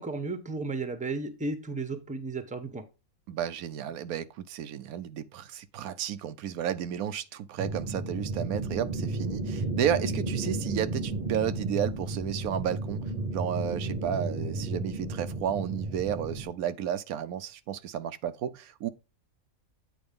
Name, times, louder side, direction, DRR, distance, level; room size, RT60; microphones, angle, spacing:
voice 1, 0.0-2.8, right 3 dB, 5° right, 0.8 m, -34 dB
voice 2, 3.3-13.0 13.3-18.9, right 9 dB, 85° right, 1.1 m, -32 dB
sound 1, 7.6-16.5, right 2 dB, 30° right, 1.0 m, -33 dB
8.7 x 4.7 x 3.6 m
omnidirectional pair, 1.5 m